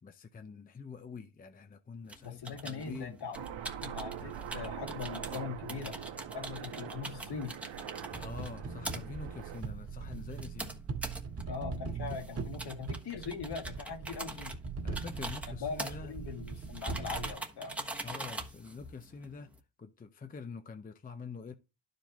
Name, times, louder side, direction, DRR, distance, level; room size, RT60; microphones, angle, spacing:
voice 1, 0.0-3.2 8.2-10.8 14.8-16.1 18.0-21.5, left 5 dB, 20° left, 0.7 m, -46 dB
sound 1, 2.1-19.6, right 1 dB, 5° right, 1.2 m, -44 dB
voice 2, 2.2-3.4 3.8-6.0 6.3-7.5 11.5-14.6 15.6-17.8, left 5 dB, 55° left, 2.1 m, -41 dB
Aircraft, 3.3-9.6, right 9 dB, 70° right, 1.2 m, -43 dB
sound 2, 8.1-17.4, right 4 dB, 30° right, 1.6 m, -41 dB
11.5 x 5.2 x 3.0 m
cardioid pair, 110°, 47 cm